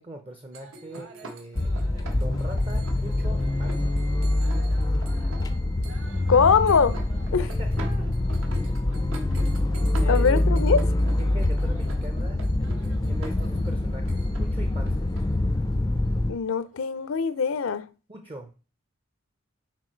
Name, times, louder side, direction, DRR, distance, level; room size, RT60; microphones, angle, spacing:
voice 1, 0.0-1.8 2.1-4.0 7.4-8.2 10.0-10.4 11.2-12.4 12.8-15.1 18.1-18.5, right 1 dB, 25° right, 0.6 m, -41 dB
sound 1, 0.5-16.8, right 2 dB, 75° right, 1.3 m, -44 dB
sound 2, 1.5-16.3, left 1 dB, 15° left, 0.4 m, -25 dB
voice 2, 6.3-7.0 7.3-7.5 10.1-10.8 16.3-17.9, left 5 dB, 75° left, 0.5 m, -22 dB
6.2 x 4.6 x 4.4 m
head